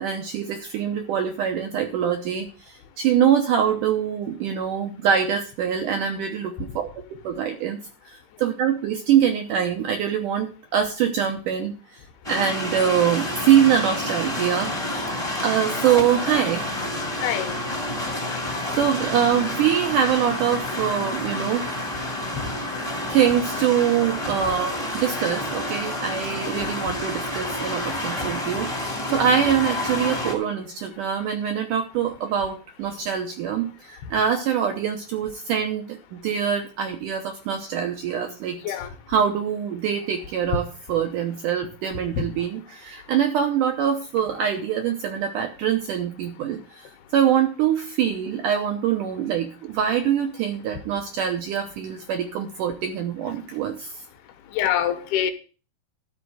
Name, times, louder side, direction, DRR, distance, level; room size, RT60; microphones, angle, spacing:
voice 1, 0.0-6.9 7.2-7.8 8.0-11.7 12.3-15.1 15.4-16.6 18.8-21.7 23.1-38.8 39.1-53.9, right 8 dB, 75° right, 4 dB, 1.9 m, -24 dB
sound 1, 12.2-30.3, left 1 dB, 20° left, 0.9 m, -29 dB
voice 2, 17.2-17.6 26.4-26.7 29.1-29.3 38.6-38.9 42.1-42.2 54.5-55.3, left 10 dB, 75° left, 8 dB, 2.9 m, -25 dB
12.5 x 4.4 x 7.7 m, 0.36 s
omnidirectional pair, 4.8 m